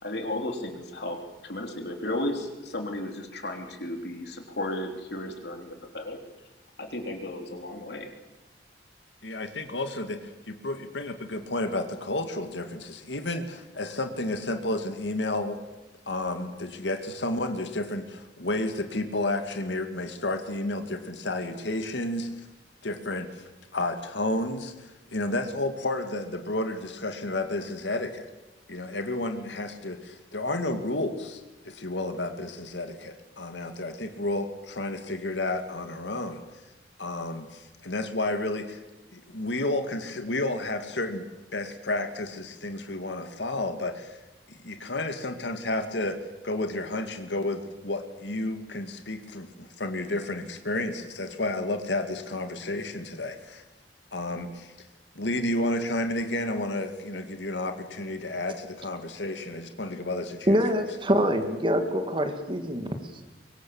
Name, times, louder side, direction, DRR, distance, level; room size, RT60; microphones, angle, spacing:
voice 1, 0.0-6.2 6.8-8.1, left 1 dB, 65° left, 3 dB, 3.5 m, -34 dB
voice 2, 9.2-15.6 16.1-22.3 22.8-23.4 23.7-28.3 28.7-36.4 37.0-38.8 39.1-41.3 41.5-44.2 44.5-46.2 46.4-53.6 54.1-54.7 55.2-60.8, left 2 dB, 85° left, 7 dB, 2.1 m, -31 dB
voice 3, 60.5-63.2, equal, 30° right, 7 dB, 2.1 m, -25 dB
23.5 x 23.5 x 7.2 m, 1.1 s
head